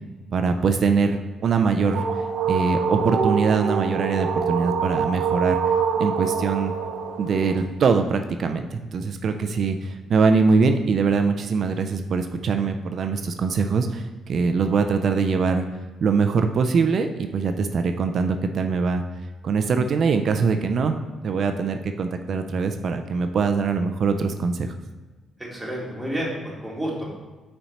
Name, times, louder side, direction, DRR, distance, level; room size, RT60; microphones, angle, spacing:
voice 1, 0.3-2.0 2.5-6.7 7.2-15.7 16.0-19.0 19.4-21.0 21.2-24.7, right 5 dB, 55° right, 7 dB, 0.4 m, -22 dB
sound 1, 1.5-7.6, right 6 dB, 85° right, 0.8 m, -25 dB
voice 2, 25.5-27.2, equal, 5° right, -5 dB, 2.0 m, -30 dB
5.7 x 4.3 x 4.1 m, 1.3 s
cardioid pair, 90°, 0 cm